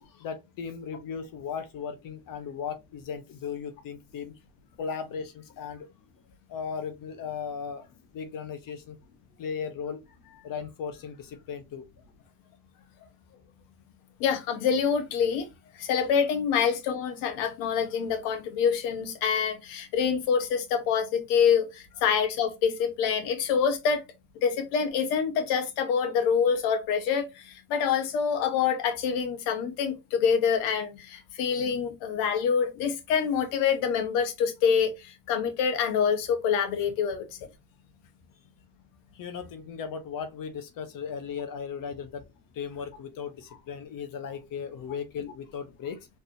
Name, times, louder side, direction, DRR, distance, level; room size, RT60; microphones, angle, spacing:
voice 1, 0.0-4.4 4.8-5.9 6.5-7.9 8.1-9.0 9.4-11.9 13.0-13.1 39.1-42.2 42.5-46.1, left 6 dB, 55° left, 0.9 m, -37 dB
voice 2, 14.2-15.5 15.8-24.0 24.4-37.4, left 7 dB, 80° left, 1.2 m, -26 dB
4.2 x 3.4 x 2.7 m
supercardioid pair, 75°, 40 cm